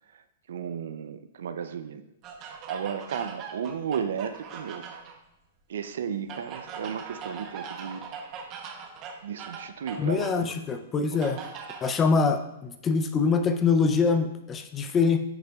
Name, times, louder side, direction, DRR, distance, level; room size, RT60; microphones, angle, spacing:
voice 1, 0.5-2.1 2.4-4.8 5.7-8.0 9.2-10.3 11.1-11.2, right 7 dB, 75° right, 11 dB, 0.5 m, -34 dB
sound 1, 2.2-5.2 6.3-10.4 11.2-12.0, right 6 dB, 30° right, 0.8 m, -41 dB
voice 2, 10.0-11.4 11.8-15.2, left 5 dB, 20° left, 8 dB, 0.5 m, -24 dB
9.7 x 6.6 x 2.4 m, 0.87 s
hypercardioid pair, 155°, 0 cm